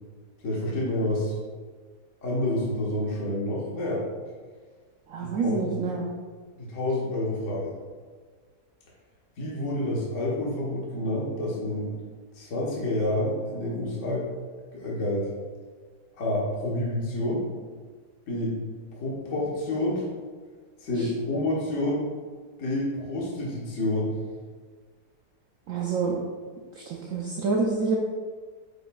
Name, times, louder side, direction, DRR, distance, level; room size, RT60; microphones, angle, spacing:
voice 1, 0.4-1.3 2.2-4.0 5.2-5.8 6.6-7.7 9.4-11.9 12.3-14.3 14.7-15.3 16.2-17.5 18.3-18.6 18.9-20.1 20.8-22.1 22.6-24.1, left 1 dB, 50° left, -5 dB, 1.6 m, -28 dB
voice 2, 5.1-6.1 21.0-21.1 25.7-26.2 26.8-28.0, right 4 dB, 65° right, -1 dB, 0.9 m, -27 dB
8.2 x 5.3 x 2.3 m, 1.5 s
omnidirectional pair, 1.8 m